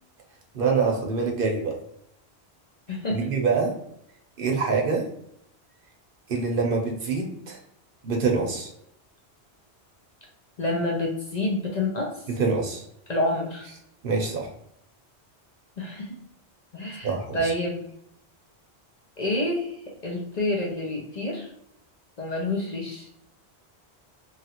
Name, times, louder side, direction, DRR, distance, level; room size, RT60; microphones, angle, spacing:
voice 1, 0.5-1.7 3.1-3.7 4.4-5.1 6.3-7.6 8.0-8.7 12.4-12.8 14.0-14.5 17.0-17.5, right 4 dB, 60° right, 1 dB, 0.8 m, -25 dB
voice 2, 2.9-3.3 10.6-12.2 13.1-13.7 15.8-16.2 16.7-17.8 19.2-19.8 20.0-21.5 22.2-23.1, left 1 dB, 50° left, -1 dB, 0.6 m, -28 dB
3.1 x 2.4 x 2.8 m, 0.76 s
omnidirectional pair, 1.1 m